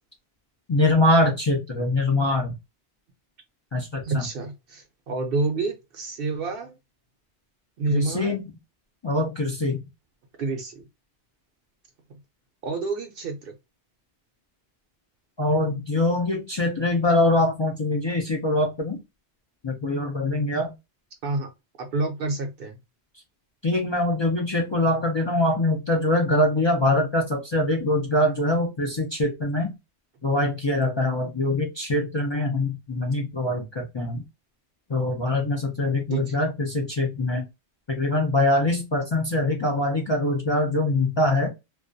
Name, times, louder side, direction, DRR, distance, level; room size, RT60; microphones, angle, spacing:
voice 1, 0.7-2.5 3.7-4.2 7.9-8.4 9.0-9.8 15.4-19.0 19.6-20.7 23.6-29.7 30.2-34.2 34.9-37.4 37.9-41.5, left 1 dB, 45° left, 0.3 m, -23 dB
voice 2, 4.0-6.8 7.8-8.4 10.4-10.8 12.1-12.2 12.6-13.5 21.2-21.5 21.8-22.8 36.1-36.3, right 3 dB, 60° right, 0.7 m, -28 dB
2.3 x 2.2 x 2.5 m
omnidirectional pair, 1.1 m